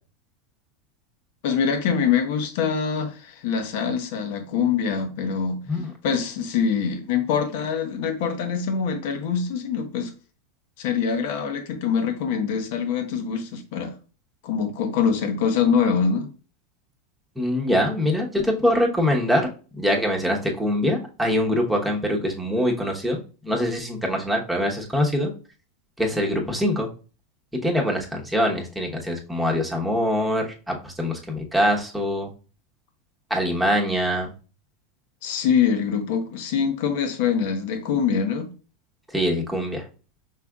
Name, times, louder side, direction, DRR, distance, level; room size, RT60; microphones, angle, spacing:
voice 1, 1.4-5.6 6.0-10.1 10.8-14.0 14.4-16.3 35.2-38.5, left 6 dB, 65° left, 1.0 m, -24 dB
voice 2, 17.4-19.5 19.8-25.3 26.0-26.9 27.5-32.3 33.3-34.3 39.1-39.8, equal, 5° right, 1.1 m, -23 dB
5.6 x 3.3 x 2.4 m
hypercardioid pair, 110°, 0 cm